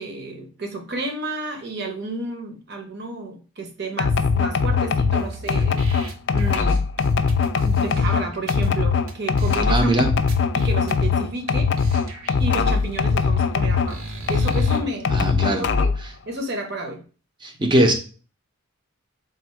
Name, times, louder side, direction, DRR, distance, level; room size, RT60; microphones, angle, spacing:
voice 1, 0.0-6.9 7.6-9.9 10.5-11.7 12.4-14.0 14.3-15.1 15.5-15.9 16.3-17.0, right 2 dB, 50° right, 3 dB, 0.8 m, -31 dB
Drum Team, 4.0-13.9 14.3-16.1, left 5 dB, 55° left, 0.3 m, -21 dB
sound 1, 5.2-8.7 9.1-9.2 9.4-9.9 10.3-11.1 11.5-11.6 11.8-14.8, right 2 dB, 80° right, 0.8 m, -39 dB
voice 2, 9.7-10.1 15.1-15.6 17.4-17.9, right 1 dB, 20° right, 4 dB, 0.5 m, -20 dB
3.6 x 2.5 x 4.3 m, 0.37 s
head